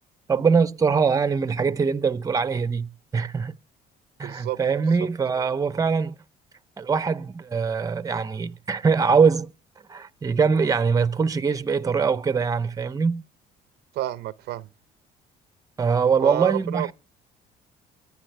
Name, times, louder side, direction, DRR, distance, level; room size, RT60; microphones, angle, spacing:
voice 1, 0.3-2.9 3.1-3.5 4.2-6.1 6.8-9.5 9.9-13.2 15.8-16.9, right 5 dB, 20° right, 0.7 m, -22 dB
voice 2, 4.2-4.6 14.0-14.7 16.2-16.9, right 15 dB, 75° right, 0.7 m, -29 dB
24.0 x 9.3 x 3.3 m
cardioid pair, 110°, 17 cm